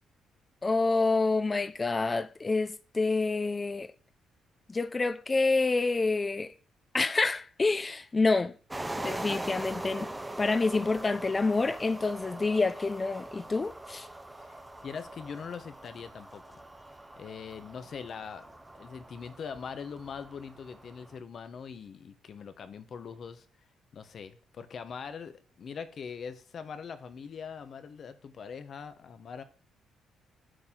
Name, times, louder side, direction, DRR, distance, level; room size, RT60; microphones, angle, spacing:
voice 1, 0.6-3.9 4.7-6.5 6.9-8.5 8.9-10.1 10.4-14.1, left 3 dB, 25° left, 0.5 m, -27 dB
sound 1, 8.7-21.2, right 1 dB, 10° right, 0.7 m, -42 dB
voice 2, 14.4-16.6 17.2-18.5 18.7-23.5 23.9-29.4, left 6 dB, 55° left, 0.9 m, -42 dB
12.5 x 4.3 x 3.7 m
cardioid pair, 90°, 0 cm